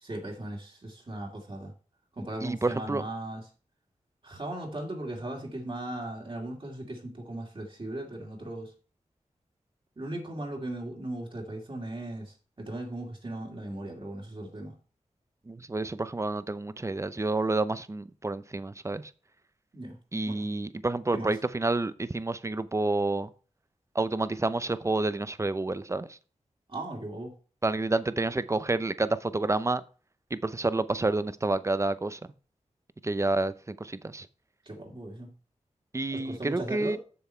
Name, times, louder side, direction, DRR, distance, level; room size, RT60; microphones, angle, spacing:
voice 1, 0.0-1.7 2.2-3.4 4.2-8.7 10.0-14.8 19.7-20.0 20.3-20.5 21.1-21.3 26.7-27.3 34.7-35.3 36.1-37.0, right 1 dB, 45° right, -1 dB, 2.2 m, -37 dB
voice 2, 2.4-3.0 15.5-19.1 20.1-23.3 23.9-26.2 27.6-29.8 30.3-32.2 33.0-34.3 35.9-37.0, right 2 dB, 25° right, 14 dB, 0.6 m, -29 dB
7.0 x 7.0 x 4.4 m, 0.38 s
wide cardioid pair, 65°, 13 cm